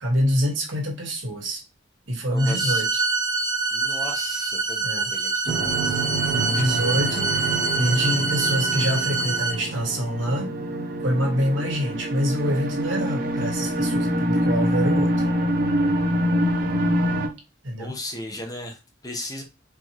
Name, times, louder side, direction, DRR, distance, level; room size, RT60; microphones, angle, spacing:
voice 1, 0.0-1.6 2.1-3.0 4.8-5.1 6.3-7.5 7.7-10.5 11.0-15.3 17.6-17.9, equal, 80° right, 1.6 m, -25 dB
voice 2, 2.3-2.9 3.7-6.0 17.8-19.4, left 1 dB, 20° left, 0.9 m, -36 dB
sound 1, 2.4-9.5, right 3 dB, 20° right, 1.0 m, -25 dB
sound 2, 5.5-17.3, right 1 dB, 50° right, 0.6 m, -25 dB
4.6 x 3.0 x 2.9 m
head